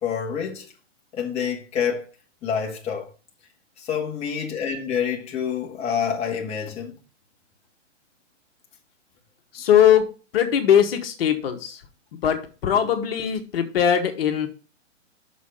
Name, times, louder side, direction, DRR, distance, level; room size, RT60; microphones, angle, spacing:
voice 1, 0.0-0.7 1.1-2.1 2.4-3.1 3.8-7.0, left 7 dB, 15° left, 1.4 m, -27 dB
voice 2, 9.5-10.1 10.3-11.8 12.2-14.5, left 9 dB, 55° left, 1.7 m, -20 dB
6.4 x 6.1 x 5.7 m
hypercardioid pair, 145°, 36 cm